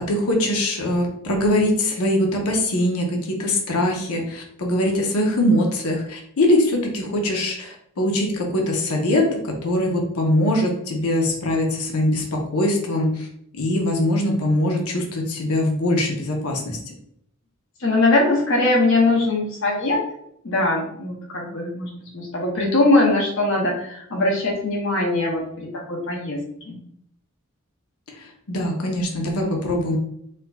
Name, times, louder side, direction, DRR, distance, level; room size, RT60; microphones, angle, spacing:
voice 1, 0.1-13.3 13.5-16.8 28.2-30.0, left 1 dB, 90° left, 1 dB, 0.8 m, -22 dB
voice 2, 17.8-20.0 20.4-26.4 26.7-26.8, left 2 dB, 60° left, -1 dB, 0.7 m, -21 dB
4.3 x 2.6 x 2.2 m, 0.73 s
head